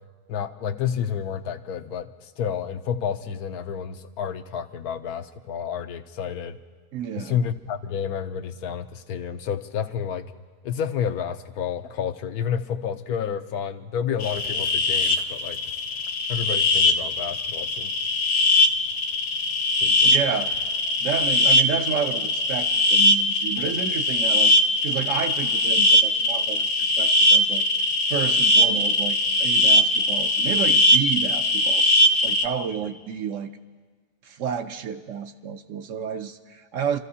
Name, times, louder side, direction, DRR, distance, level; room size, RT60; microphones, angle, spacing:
voice 1, 0.3-2.1 2.4-6.6 7.2-10.2 10.6-15.6 16.3-17.9 19.8-20.4, left 8 dB, 90° left, 7 dB, 1.2 m, -30 dB
voice 2, 6.9-7.4 20.0-20.5 21.0-24.5 24.8-27.6 28.1-31.9 32.2-33.5 34.2-37.0, right 7 dB, 65° right, 8 dB, 0.9 m, -30 dB
sound 1, 14.2-32.5, left 1 dB, 65° left, 1.1 m, -21 dB
29.0 x 13.5 x 2.8 m, 1.4 s
omnidirectional pair, 1.6 m